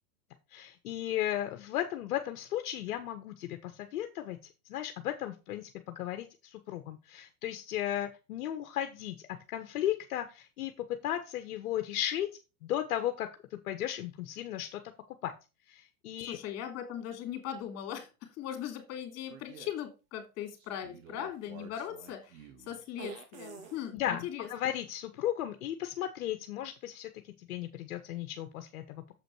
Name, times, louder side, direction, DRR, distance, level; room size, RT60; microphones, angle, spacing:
voice 1, 0.5-4.4 4.7-12.3 12.6-14.8 15.2-15.3 15.7-16.4 23.9-27.1 27.5-29.0, left 12 dB, 65° left, 7 dB, 1.2 m, -35 dB
voice 2, 16.2-18.1 18.4-24.5, left 10 dB, 35° left, 4 dB, 3.0 m, -39 dB
sound 1, 19.3-19.7 20.6-24.2, right 6 dB, 60° right, 2.4 m, -49 dB
7.4 x 5.2 x 4.7 m, 0.29 s
hypercardioid pair, 120°, 45 cm